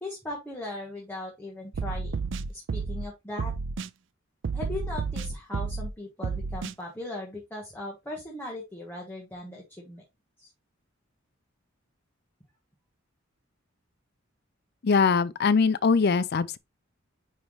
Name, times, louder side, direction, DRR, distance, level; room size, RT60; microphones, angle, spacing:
voice 1, 0.0-3.5 4.5-10.0 10.4-10.5, left 2 dB, 10° left, 1.5 m, -38 dB
sound 1, 1.7-3.1 3.4-3.9 4.4-5.9 6.2-6.7, right 4 dB, 60° right, 0.4 m, -31 dB
voice 2, 14.8-16.6, left 5 dB, 50° left, 0.5 m, -22 dB
9.2 x 3.5 x 3.1 m
head